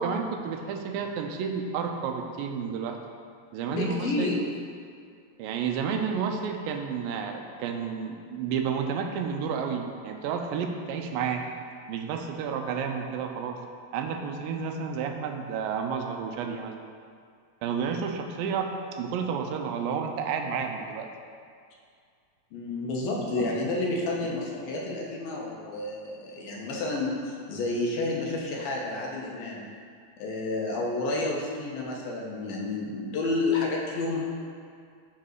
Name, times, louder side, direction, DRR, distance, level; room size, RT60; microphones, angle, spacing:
voice 1, 0.0-3.0 3.5-4.3 5.4-11.5 11.9-13.6 13.9-16.8 17.6-21.1 23.4-23.5 24.2-24.3, right 6 dB, 90° right, 4 dB, 2.4 m, -31 dB
voice 2, 3.7-4.4 22.5-29.6 30.2-34.2, left 2 dB, 90° left, -2 dB, 3.0 m, -30 dB
9.1 x 4.1 x 6.5 m, 2.2 s
omnidirectional pair, 4.0 m